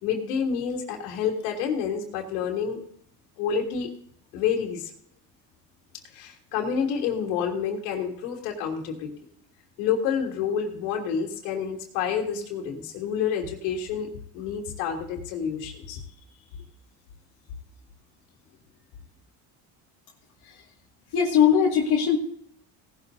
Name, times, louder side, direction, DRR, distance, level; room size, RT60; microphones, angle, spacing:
voice 1, 0.0-2.8 3.4-3.9 4.3-4.9 6.1-9.1 9.8-16.0, left 7 dB, 90° left, 0 dB, 3.1 m, -28 dB
voice 2, 21.1-22.2, left 8 dB, 65° left, -3 dB, 2.2 m, -20 dB
18.0 x 13.0 x 2.7 m, 0.67 s
supercardioid pair, 95°, 42 cm